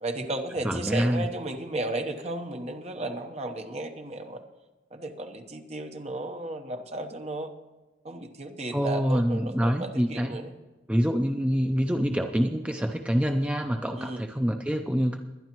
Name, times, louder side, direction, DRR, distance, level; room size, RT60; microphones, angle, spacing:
voice 1, 0.0-4.4 4.9-7.5 8.0-10.5 14.0-14.2, right 1 dB, 35° right, 5 dB, 1.0 m, -34 dB
voice 2, 0.6-1.3 8.7-10.3 10.9-15.2, equal, 5° right, 5 dB, 0.5 m, -26 dB
22.0 x 10.5 x 3.0 m, 1.2 s
head